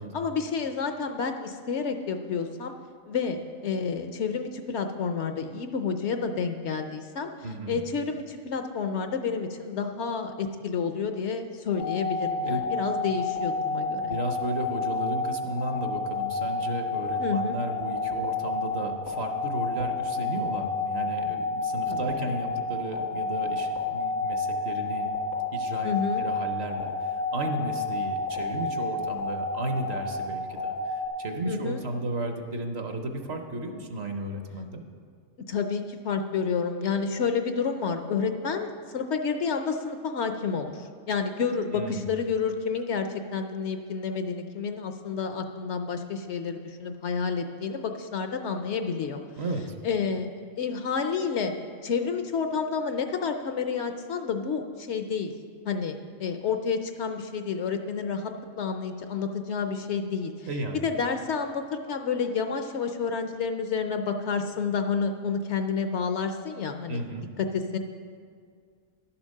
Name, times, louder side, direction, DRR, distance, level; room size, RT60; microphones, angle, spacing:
voice 1, 0.1-2.7 3.1-7.3 7.7-14.2 17.2-17.6 21.9-22.3 25.8-26.2 31.5-31.8 35.5-49.2 49.8-50.3 50.6-51.5 51.8-55.3 55.6-60.5 60.8-67.3 67.5-67.8, left 5 dB, 65° left, 7 dB, 0.8 m, -30 dB
voice 2, 7.4-7.8 12.4-12.6 14.0-25.1 25.5-25.9 26.2-34.8 41.7-42.1 49.4-49.8 60.5-60.8 66.9-67.3, right 1 dB, 55° right, 5 dB, 1.0 m, -34 dB
sound 1, 11.7-31.1, left 4 dB, 85° left, 2.5 m, -30 dB
11.5 x 7.2 x 6.4 m, 2.1 s
omnidirectional pair, 1.4 m